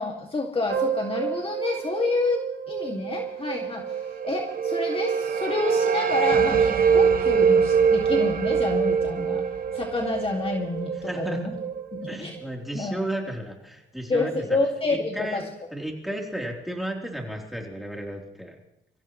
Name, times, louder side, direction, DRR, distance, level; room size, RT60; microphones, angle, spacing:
voice 1, 0.0-9.4 9.7-11.5 11.9-12.4 12.7-13.0 14.1-15.4, left 3 dB, 30° left, 1 dB, 2.2 m, -28 dB
sound 1, 0.7-12.9, right 8 dB, 65° right, 5.7 m, -34 dB
sound 2, 4.1-11.1, right 6 dB, 50° right, 1.3 m, -23 dB
voice 2, 10.9-11.5 12.1-14.6 14.9-15.5 15.7-18.6, right 1 dB, ahead, 0 dB, 3.6 m, -33 dB
25.0 x 15.0 x 3.2 m, 0.82 s
cardioid pair, 90°, 20 cm